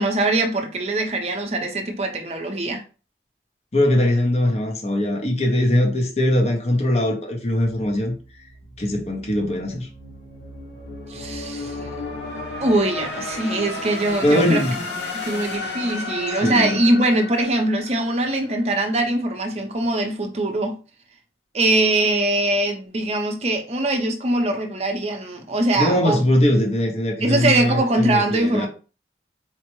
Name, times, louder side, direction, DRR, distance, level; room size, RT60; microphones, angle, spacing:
voice 1, 0.0-2.8 11.1-11.9 12.6-14.6 15.1-20.8 21.5-26.2 27.2-28.7, right 2 dB, 35° right, 0.6 m, -22 dB
voice 2, 3.7-8.2 8.8-9.9 14.2-14.8 16.4-16.8 25.7-28.7, left 1 dB, 35° left, 0.7 m, -21 dB
sound 1, 8.0-18.6, left 2 dB, 80° left, 0.8 m, -33 dB
4.4 x 2.0 x 3.0 m
head